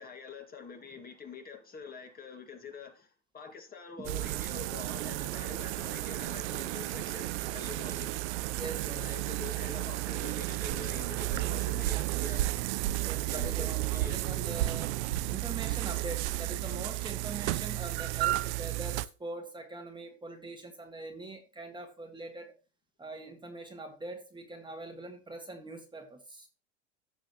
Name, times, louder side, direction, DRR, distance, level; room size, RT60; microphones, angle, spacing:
voice 1, 0.0-3.1 3.3-8.1 9.0-12.4 13.3-13.7 13.9-14.2, left 5 dB, 25° left, 2.0 m, -46 dB
sound 1, 4.0-19.1, right 17 dB, 65° right, 0.7 m, -33 dB
sound 2, 5.3-13.7, right 8 dB, 85° right, 3.1 m, -51 dB
voice 2, 8.6-9.2 13.1-14.9 15.3-22.6 23.0-26.5, right 2 dB, 10° right, 1.7 m, -43 dB
15.5 x 6.2 x 3.0 m
hypercardioid pair, 110°, 37 cm